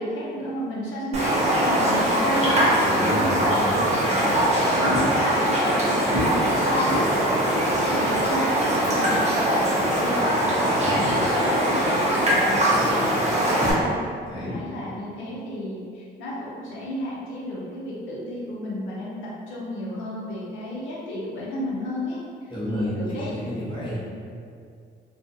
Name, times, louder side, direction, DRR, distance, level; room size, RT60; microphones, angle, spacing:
voice 1, 0.0-13.9 14.3-19.2 19.5-22.2 22.7-23.3, left 1 dB, 80° left, -7 dB, 0.6 m, -32 dB
Raindrop, 1.1-13.7, right 1 dB, 35° right, 0.7 m, -22 dB
voice 2, 2.8-3.8 10.7-11.1 12.7-12.9 14.2-14.6 22.5-24.1, equal, 25° left, -9 dB, 1.1 m, -31 dB
2.4 x 2.3 x 2.6 m, 2.3 s
cardioid pair, 90°, 20 cm